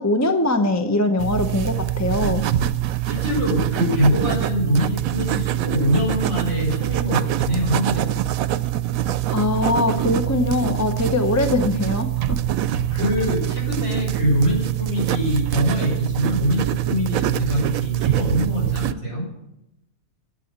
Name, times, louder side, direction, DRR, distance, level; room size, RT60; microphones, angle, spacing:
voice 1, 0.0-2.4 9.3-12.4, left 2 dB, 15° left, 7 dB, 0.6 m, -22 dB
sound 1, 1.2-18.9, right 13 dB, 75° right, 1.0 m, -24 dB
voice 2, 3.0-8.2 12.9-19.2, equal, 55° left, -3 dB, 6.6 m, -23 dB
12.0 x 8.4 x 8.0 m, 0.85 s
omnidirectional pair, 1.5 m